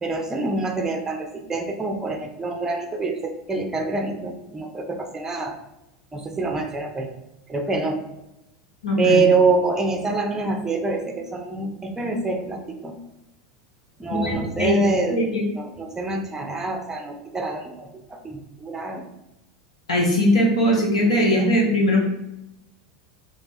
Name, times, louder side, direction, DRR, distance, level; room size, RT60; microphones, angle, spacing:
voice 1, 0.0-5.6 6.1-7.1 7.5-8.0 9.0-12.9 14.0-19.0, right 3 dB, 15° right, 4 dB, 0.6 m, -25 dB
voice 2, 8.8-9.2 14.1-14.3 14.6-14.7 15.1-15.4 19.9-22.1, left 1 dB, 90° left, -3 dB, 0.9 m, -20 dB
2.7 x 2.3 x 3.9 m, 0.89 s
hypercardioid pair, 85°, 3 cm